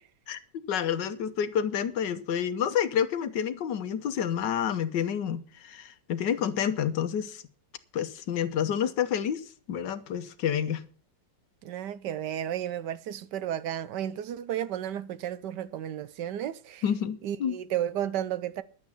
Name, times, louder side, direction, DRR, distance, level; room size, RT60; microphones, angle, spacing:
voice 1, 0.7-7.4 7.9-10.8 16.8-17.6, left 8 dB, 75° left, 1.6 m, -29 dB
voice 2, 11.6-16.8 17.2-18.6, right 11 dB, 75° right, 1.3 m, -33 dB
11.0 x 8.7 x 7.0 m
omnidirectional pair, 1.9 m